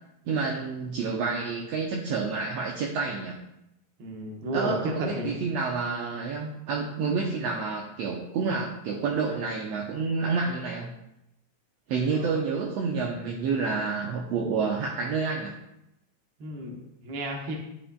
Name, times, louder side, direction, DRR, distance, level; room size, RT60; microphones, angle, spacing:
voice 1, 0.3-3.4 4.5-10.9 11.9-15.5, right 4 dB, 75° right, -1 dB, 1.7 m, -29 dB
voice 2, 4.0-5.4 12.1-12.3 16.4-17.6, right 1 dB, 55° right, 0 dB, 1.6 m, -32 dB
10.0 x 6.9 x 2.3 m, 0.85 s
omnidirectional pair, 3.4 m